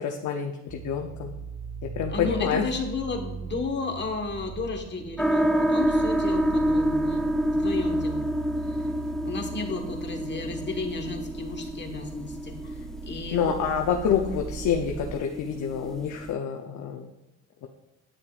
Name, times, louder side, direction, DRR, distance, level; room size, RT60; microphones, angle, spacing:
voice 1, 0.0-1.3 2.0-2.7 13.3-17.1, left 7 dB, 75° left, 3 dB, 0.8 m, -27 dB
sound 1, 0.7-15.2, right 5 dB, 65° right, 1.1 m, -39 dB
voice 2, 2.1-8.3 8.7-8.8 9.2-13.5, left 3 dB, 35° left, 3 dB, 1.5 m, -33 dB
sound 2, 5.2-16.3, equal, ahead, 0.4 m, -28 dB
9.7 x 8.8 x 2.5 m, 1.0 s
cardioid pair, 90°, 30 cm